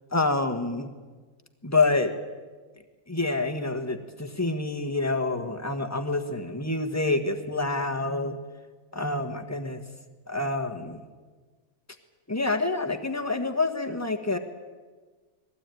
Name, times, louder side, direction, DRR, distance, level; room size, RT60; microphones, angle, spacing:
voice 1, 0.1-0.9 1.6-2.1 3.1-8.4 8.9-9.8 10.3-11.0 12.3-14.4, left 3 dB, 10° left, 6 dB, 1.3 m, -27 dB
21.0 x 16.0 x 9.2 m, 1.4 s
omnidirectional pair, 1.6 m